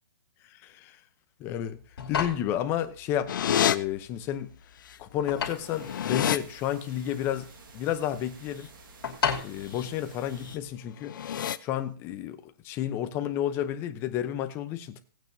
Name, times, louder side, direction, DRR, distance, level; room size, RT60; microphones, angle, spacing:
voice 1, 0.5-1.0 1.4-1.8 2.1-4.5 5.0-8.7 9.4-11.1 11.6-15.0, left 11 dB, 20° left, 0.7 m, -31 dB
sound 1, 1.7-10.7, left 6 dB, 75° left, 2.8 m, -36 dB
sound 2, 3.3-3.8 4.9-5.0 5.3-6.4 9.6-9.9 10.3-10.6 11.0-11.6, left 10 dB, 55° left, 0.6 m, -28 dB
sound 3, 5.5-10.5, right 5 dB, 60° right, 1.7 m, -52 dB
17.5 x 9.0 x 2.7 m
hypercardioid pair, 165°, 12 cm